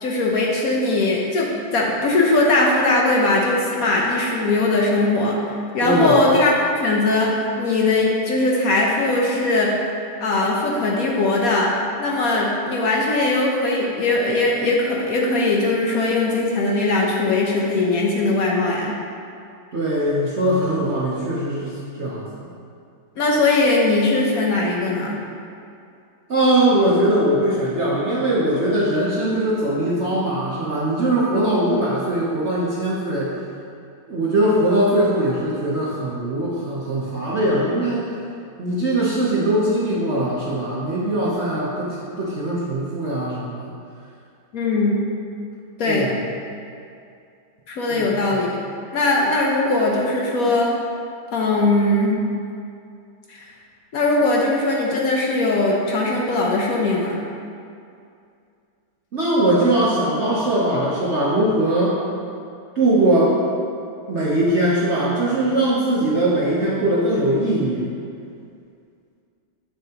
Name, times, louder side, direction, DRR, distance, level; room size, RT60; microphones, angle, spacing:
voice 1, 0.0-6.5 6.8-9.7 10.2-11.7 12.0-19.0 23.2-25.2 44.5-45.0 45.8-46.1 47.7-48.6 48.9-50.7 51.3-52.2 53.3-53.5 53.9-57.2, left 2 dB, 60° left, -2 dB, 0.9 m, -20 dB
voice 2, 5.8-6.2 19.7-22.3 26.3-33.3 34.1-38.1 38.6-43.7 45.9-46.2 47.9-48.3 59.1-62.0 62.8-63.4 64.1-67.9, right 1 dB, 55° right, -7 dB, 0.8 m, -21 dB
7.7 x 6.9 x 2.9 m, 2.4 s
omnidirectional pair, 2.2 m